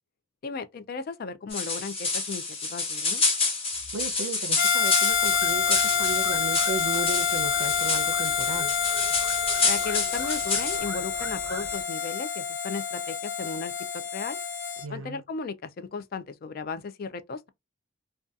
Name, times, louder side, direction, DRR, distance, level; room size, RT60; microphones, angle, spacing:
voice 1, 0.4-3.2 9.6-13.7 14.1-14.4 14.9-17.5, left 4 dB, 45° left, 0.3 m, -35 dB
sound 1, 1.5-10.8, left 3 dB, 30° left, 0.8 m, -29 dB
voice 2, 3.9-8.7 14.8-15.2, right 5 dB, 85° right, 0.5 m, -35 dB
Harmonica, 4.6-14.8, left 7 dB, 65° left, 0.8 m, -27 dB
sound 2, 5.1-11.8, right 1 dB, 5° right, 0.9 m, -43 dB
2.6 x 2.3 x 2.3 m
head